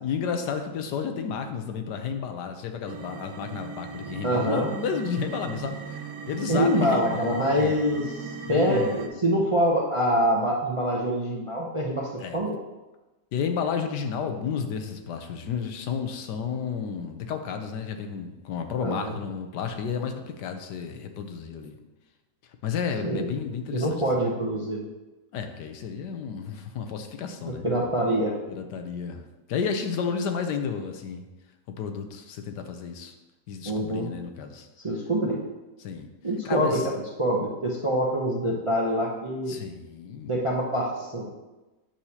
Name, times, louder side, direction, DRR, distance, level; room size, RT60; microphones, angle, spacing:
voice 1, 0.0-7.8 8.4-9.0 12.2-12.4 13.3-21.8 22.6-24.0 25.3-27.7 28.5-29.2 29.5-31.2 31.8-33.1 33.5-34.7 35.8-36.1 36.4-36.9 39.5-40.3, left 6 dB, 85° left, 6 dB, 1.4 m, -31 dB
sound 1, 2.9-9.1, right 5 dB, 60° right, 0.8 m, -38 dB
voice 2, 4.2-4.7 6.5-12.6 18.8-19.2 23.0-23.3 23.7-24.9 27.5-28.4 33.6-34.1 34.8-35.4 36.2-39.6 40.3-41.3, equal, 35° right, -3 dB, 0.5 m, -25 dB
8.8 x 6.3 x 2.8 m, 1.1 s
omnidirectional pair, 1.8 m